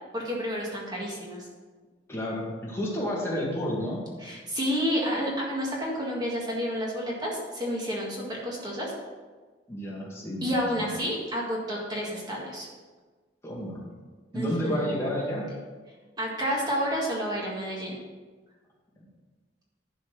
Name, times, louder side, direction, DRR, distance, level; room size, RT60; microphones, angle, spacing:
voice 1, 0.1-1.5 4.2-8.9 10.4-12.7 14.3-15.0 16.2-18.0, equal, 25° right, -4 dB, 1.8 m, -30 dB
voice 2, 2.1-4.0 9.7-10.9 13.4-13.9 14.3-15.5, equal, 15° left, -5 dB, 2.0 m, -31 dB
11.0 x 4.5 x 6.4 m, 1.4 s
head